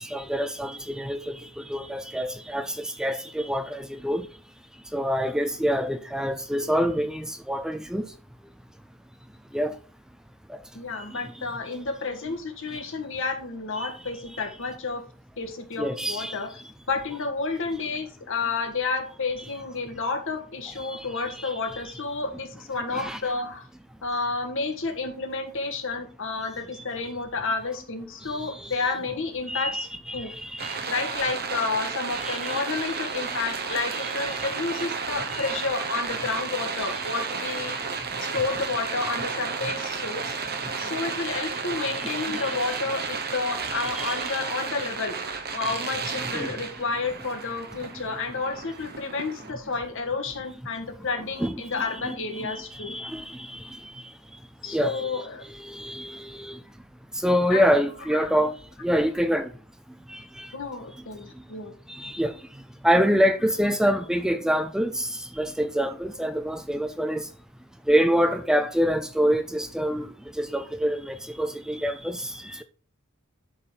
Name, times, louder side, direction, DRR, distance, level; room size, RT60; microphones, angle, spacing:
voice 1, 0.1-1.4 1.7-4.2 4.9-8.1 9.5-9.7 15.8-16.3 22.9-23.2 29.5-30.7 32.3-32.6 42.0-42.5 44.0-44.1 46.3-46.5 51.4-51.5 52.4-52.6 52.9-53.5 54.7-55.2 55.7-56.6 57.2-58.5 58.8-59.5 60.4-60.5 62.0-62.3 62.8-65.1 65.4-67.2 67.9-70.1 70.4-72.3, equal, 5° right, 0.4 m, -26 dB
voice 2, 10.7-15.0 15.4-16.6 16.9-23.6 24.0-29.9 30.1-30.3 30.9-37.8 38.2-40.3 40.8-45.2 45.5-52.9 54.6-55.4 57.5-57.7 58.1-58.3 60.5-61.7, left 4 dB, 65° left, 1.7 m, -30 dB
sound 1, 30.6-49.5, right 5 dB, 50° right, 1.1 m, -32 dB
11.5 x 4.1 x 4.0 m
head